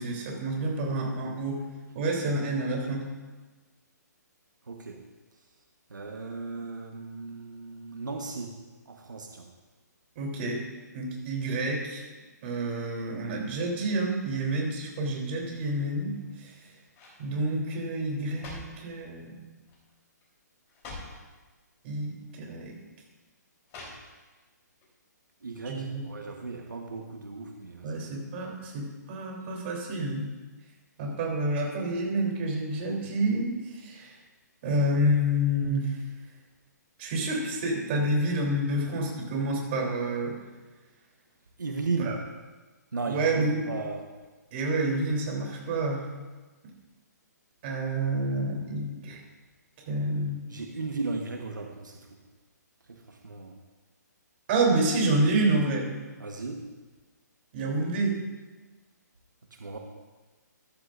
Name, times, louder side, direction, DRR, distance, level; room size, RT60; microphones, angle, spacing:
voice 1, 0.0-1.6 1.9-3.1 10.2-10.6 10.9-12.0 12.4-16.1 16.4-16.5 17.2-19.4 21.8-22.7 25.6-26.0 27.8-30.3 31.0-34.2 34.6-35.9 37.0-40.3 42.0-42.2 43.1-43.6 44.5-46.0 47.6-49.2 49.9-50.4 54.5-55.9 57.5-58.2, right 1 dB, 40° right, -1 dB, 3.5 m, -28 dB
voice 2, 4.7-5.0 5.9-8.6 8.9-9.5 25.4-28.0 41.6-42.1 42.9-44.1 50.5-52.2 52.9-53.6 56.2-56.7 59.5-59.8, right 3 dB, 90° right, 2 dB, 1.3 m, -36 dB
sound 1, 16.1-16.5 16.9-17.3 18.0-18.9 19.7-19.9 20.2-20.3 20.7-21.2 22.2-22.3 23.7-24.4 24.8-24.9, left 2 dB, 25° left, 3.9 m, -45 dB
13.5 x 13.0 x 2.6 m, 1.3 s
hypercardioid pair, 145°, 10 cm